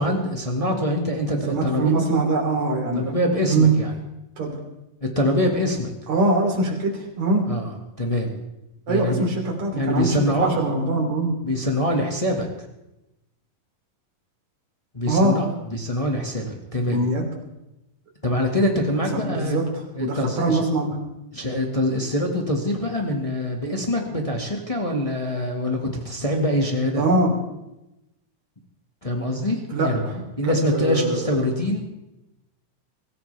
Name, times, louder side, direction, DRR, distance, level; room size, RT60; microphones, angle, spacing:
voice 1, 0.0-1.9 2.9-3.9 5.0-5.9 7.5-8.3 8.9-9.2 9.7-10.6 11.4-12.5 14.9-17.0 18.2-19.6 19.9-20.6 21.3-27.0 29.0-30.0 30.4-31.8, left 1 dB, 20° left, 1 dB, 0.9 m, -24 dB
voice 2, 1.5-3.1 3.5-3.7 4.4-4.6 6.1-7.5 8.9-11.3 15.1-15.3 16.9-17.2 19.3-21.0 26.9-27.3 29.7-31.4, right 2 dB, 60° right, -1 dB, 4.4 m, -23 dB
24.0 x 15.0 x 3.4 m, 0.92 s
omnidirectional pair, 3.6 m